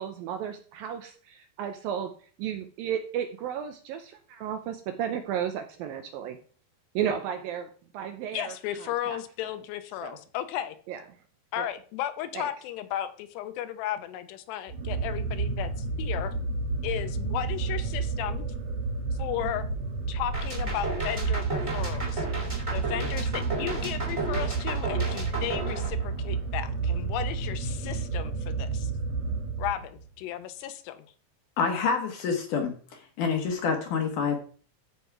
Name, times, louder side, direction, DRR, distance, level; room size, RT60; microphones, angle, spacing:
voice 1, 0.0-2.1 2.4-6.4 7.0-9.2 10.0-10.2 10.9-11.0 11.6-11.7 12.3-12.5, right 9 dB, 80° right, 7 dB, 2.2 m, -33 dB
voice 2, 8.3-10.8 11.5-16.3 16.8-18.5 19.2-19.7 20.1-22.3 22.7-28.9 29.6-31.1, left 12 dB, 85° left, 10 dB, 2.9 m, -34 dB
sound 1, 14.7-30.0, right 4 dB, 60° right, 3.1 m, -31 dB
sound 2, 20.3-26.5, right 2 dB, 15° right, 1.4 m, -34 dB
voice 3, 31.6-32.8 33.2-34.4, left 5 dB, 65° left, 4 dB, 2.2 m, -27 dB
13.0 x 4.6 x 4.7 m, 0.43 s
omnidirectional pair, 4.8 m